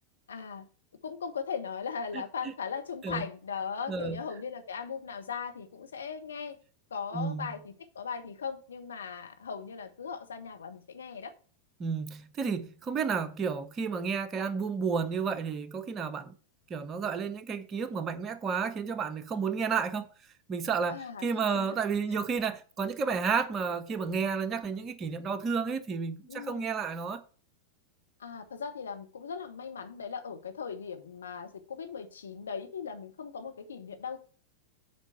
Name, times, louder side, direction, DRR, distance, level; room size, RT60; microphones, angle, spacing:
voice 1, 0.3-0.7 1.0-6.6 6.9-11.3 20.9-21.8 26.3-26.7 28.2-34.2, left 6 dB, 70° left, 1.3 m, -38 dB
voice 2, 3.9-4.2 7.1-7.5 11.8-16.3 16.7-20.1 20.5-27.2, right 5 dB, 25° right, 0.9 m, -31 dB
8.0 x 5.0 x 6.5 m
figure-of-eight pair, 90°, 0 cm